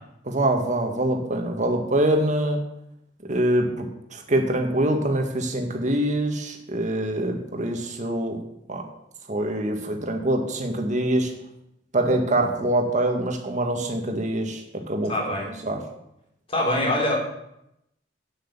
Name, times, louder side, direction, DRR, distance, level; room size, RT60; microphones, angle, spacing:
voice 1, 0.2-2.6 3.3-8.4 8.7-8.8 9.3-11.3 11.9-15.8, right 1 dB, 40° right, 3 dB, 1.9 m, -24 dB
voice 2, 15.1-15.5 16.5-17.2, left 1 dB, 30° left, -1 dB, 3.5 m, -23 dB
9.2 x 8.1 x 7.4 m, 0.82 s
head